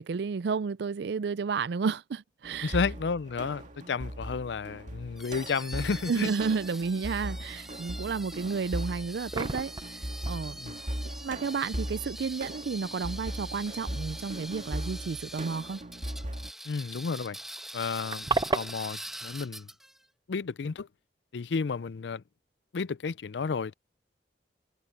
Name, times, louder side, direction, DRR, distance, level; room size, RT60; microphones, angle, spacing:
voice 1, 0.0-2.8 6.1-9.7 10.3-10.6 11.0-15.8, right 5 dB, 65° right, 0.4 m, -31 dB
sound 1, 2.4-16.5, right 1 dB, 45° right, 2.3 m, -39 dB
voice 2, 2.6-6.3 10.6-10.8 16.7-17.4 17.7-19.7 20.3-20.9 21.3-22.2 22.7-23.7, left 5 dB, 75° left, 0.5 m, -32 dB
sound 2, 5.2-20.0, right 1 dB, ahead, 1.4 m, -44 dB
sound 3, 9.3-10.0 10.3-10.4 12.8-13.0 13.8-13.9 14.2-14.3 16.7-16.8 17.0-17.1 17.4-18.7, right 3 dB, 20° right, 0.6 m, -31 dB
head